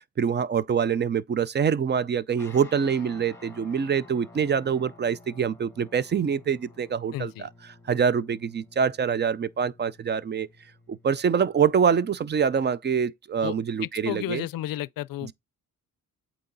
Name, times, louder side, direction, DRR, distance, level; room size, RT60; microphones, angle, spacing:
voice 1, 0.0-7.5 7.9-10.5 10.9-14.4 15.2-15.3, right 7 dB, 35° right, 0.4 m, -25 dB
sound 1, 2.3-12.8, left 3 dB, 5° left, 1.3 m, -52 dB
voice 2, 7.1-7.5 13.4-13.6 13.8-15.3, left 15 dB, 85° left, 0.5 m, -32 dB
8.4 x 2.9 x 3.9 m
cardioid pair, 110°, 33 cm